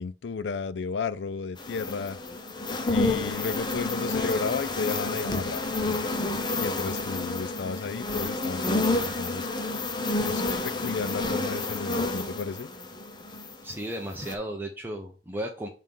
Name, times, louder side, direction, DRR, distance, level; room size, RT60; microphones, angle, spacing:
voice 1, 0.0-2.2 2.8-5.7 6.6-9.5 10.2-12.7, left 5 dB, 75° left, 0.4 m, -33 dB
sound 1, 1.6-13.7 14.1-14.3, left 2 dB, 25° left, 0.8 m, -29 dB
voice 2, 13.6-15.7, right 1 dB, 10° right, 0.8 m, -34 dB
7.4 x 3.7 x 5.4 m
head